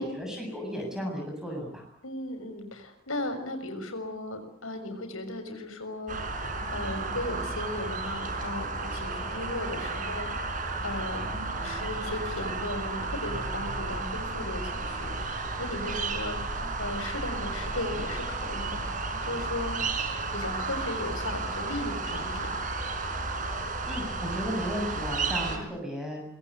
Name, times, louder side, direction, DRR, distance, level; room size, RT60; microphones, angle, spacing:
voice 1, 0.0-1.8 23.8-26.2, equal, 5° right, 1 dB, 7.5 m, -34 dB
voice 2, 2.0-6.4 6.7-11.3 11.6-16.4 16.8-19.0 19.2-19.8 20.3-22.5 25.5-25.7, left 2 dB, 90° left, 8 dB, 6.6 m, -36 dB
sound 1, 6.1-25.6, right 3 dB, 40° right, 4.8 m, -33 dB
25.0 x 21.5 x 9.8 m, 0.69 s
head